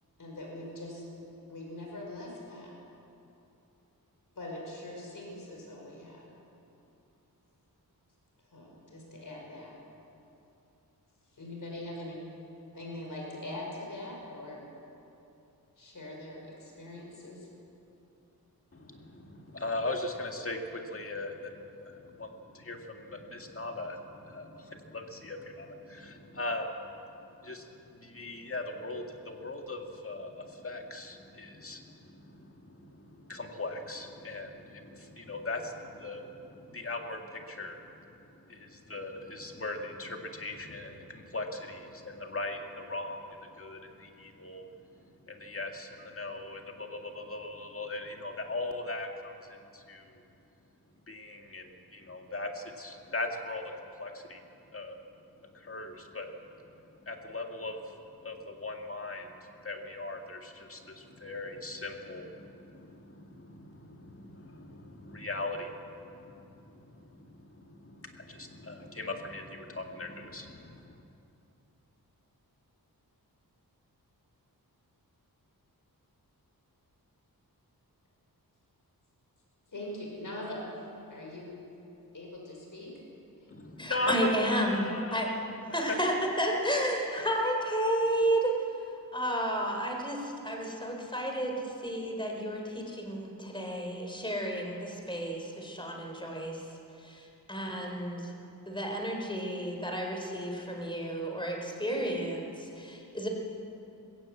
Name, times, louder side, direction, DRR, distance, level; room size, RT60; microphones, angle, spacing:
voice 1, 0.2-1.0 1.5-2.7 4.4-6.3 8.5-9.7 11.3-12.2 12.7-14.6 15.8-17.5 79.7-80.7 81.1-81.5 82.1-83.0, left 1 dB, 55° left, -1 dB, 5.5 m, -42 dB
voice 2, 18.7-27.0 27.4-44.7 45.0-50.2 51.1-54.4 54.7-55.0 55.5-56.3 56.5-71.0 83.5-85.2 85.7-86.0, left 2 dB, 35° left, 3 dB, 2.0 m, -39 dB
voice 3, 83.8-85.3 85.7-88.5 89.1-96.6 97.0-97.2 97.5-98.3 98.7-103.3, equal, 15° left, 2 dB, 3.7 m, -32 dB
21.0 x 16.0 x 8.4 m, 2.8 s
wide cardioid pair, 115°, 37 cm